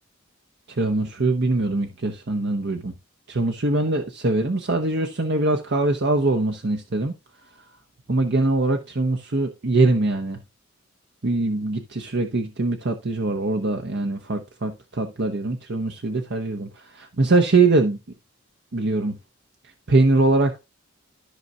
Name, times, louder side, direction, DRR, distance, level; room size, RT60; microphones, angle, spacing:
voice 1, 0.7-2.9 3.3-7.1 8.1-10.4 11.2-18.0 18.7-19.2 19.9-20.6, right 2 dB, 60° right, 1.0 m, -22 dB
13.5 x 5.5 x 2.4 m
head